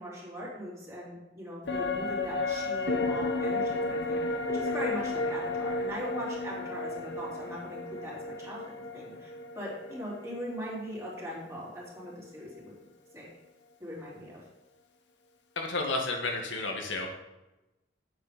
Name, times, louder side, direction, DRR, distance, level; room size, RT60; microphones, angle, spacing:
voice 1, 0.0-8.6 8.9-12.7 13.1-13.3 13.8-14.4, equal, 15° right, -5 dB, 3.2 m, -40 dB
sound 1, 1.7-11.2 11.5-11.6, left 2 dB, 70° left, 1.2 m, -33 dB
voice 2, 15.5-17.1, left 2 dB, 85° left, 1 dB, 1.7 m, -31 dB
8.9 x 7.6 x 5.1 m, 1.0 s
head